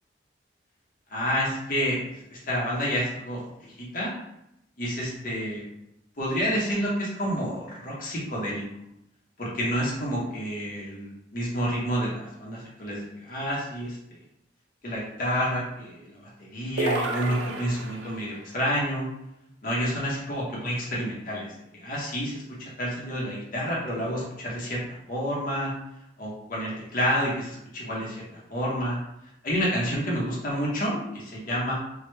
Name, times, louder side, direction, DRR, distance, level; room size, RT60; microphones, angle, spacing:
voice 1, 1.1-4.1 4.8-5.6 6.2-8.6 9.4-14.0 14.8-19.1 19.6-21.5 21.7-24.8 25.1-25.7 26.2-28.2 28.5-29.0 29.4-31.7, equal, 45° left, -5 dB, 0.6 m, -29 dB
sound 1, 16.8-18.3, right 2 dB, 80° right, 0.4 m, -31 dB
3.1 x 2.0 x 3.1 m, 0.82 s
head